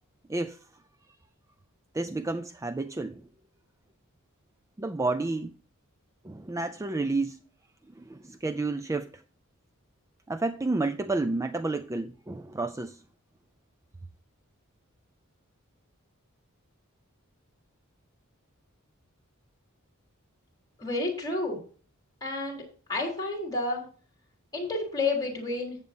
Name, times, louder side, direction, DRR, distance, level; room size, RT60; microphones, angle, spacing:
voice 1, 1.9-3.2 4.8-5.5 6.2-7.4 8.0-9.2 10.3-13.0, right 3 dB, 15° right, 0.3 m, -30 dB
voice 2, 20.8-21.6 22.2-22.6 22.9-23.8 24.5-25.8, left 2 dB, 20° left, 4.0 m, -30 dB
14.5 x 8.1 x 2.7 m
head